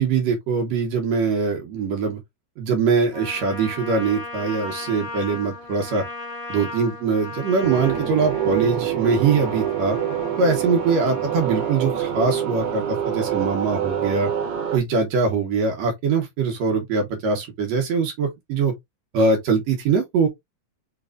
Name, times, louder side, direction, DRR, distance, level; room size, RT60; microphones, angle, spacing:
voice 1, 0.0-2.2 2.6-6.0 6.5-10.0 10.4-14.3 14.7-18.7 19.1-20.3, right 4 dB, 70° right, 2.3 m, -22 dB
Trumpet, 3.1-11.8, left 3 dB, 10° left, 1.6 m, -37 dB
sound 1, 7.6-14.8, right 9 dB, 90° right, 1.0 m, -26 dB
5.3 x 3.1 x 2.4 m
omnidirectional pair, 3.3 m